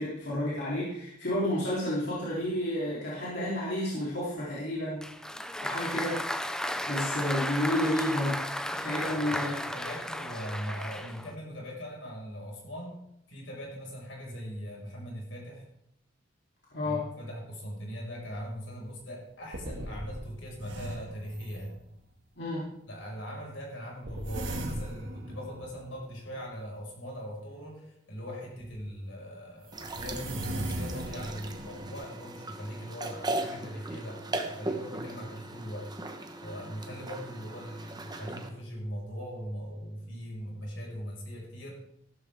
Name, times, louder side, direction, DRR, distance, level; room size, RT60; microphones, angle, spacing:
voice 1, 0.0-5.1 5.6-6.2 6.9-8.4 8.8-9.5 16.7-17.1 22.4-22.8, left 1 dB, 60° left, -8 dB, 3.6 m, -31 dB
Applause, 5.0-11.3, equal, 5° left, 0.6 m, -34 dB
voice 2, 8.6-13.0 13.3-15.7 16.8-21.8 22.9-35.9 36.4-41.7, equal, 80° left, -1 dB, 5.5 m, -40 dB
sound 1, 18.2-18.3 18.9-19.0 19.5-22.1 24.1-26.4 28.6-28.7 29.7-31.9, right 1 dB, 70° right, 2.2 m, -39 dB
sound 2, 29.7-38.5, right 2 dB, 20° right, 1.1 m, -38 dB
15.5 x 12.5 x 3.6 m, 0.78 s
head